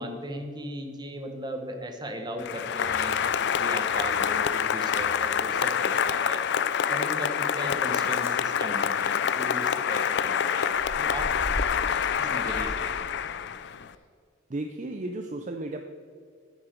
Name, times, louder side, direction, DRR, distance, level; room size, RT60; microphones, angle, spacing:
voice 1, 0.0-6.4 6.9-11.6 11.9-12.9, equal, 20° right, 4 dB, 1.1 m, -37 dB
Applause, 2.4-13.9, left 8 dB, 55° left, 0.4 m, -27 dB
sound 1, 2.8-6.2, equal, 5° right, 2.1 m, -47 dB
Chewing mastication, 8.1-8.3 9.0-9.1 9.3-9.5 9.9-10.0 10.3-11.9 12.2-13.4 13.8-13.9, equal, 85° left, 2.3 m, -37 dB
voice 2, 14.5-15.8, right 2 dB, 35° right, 5 dB, 0.5 m, -34 dB
10.0 x 9.5 x 4.5 m, 2.1 s
head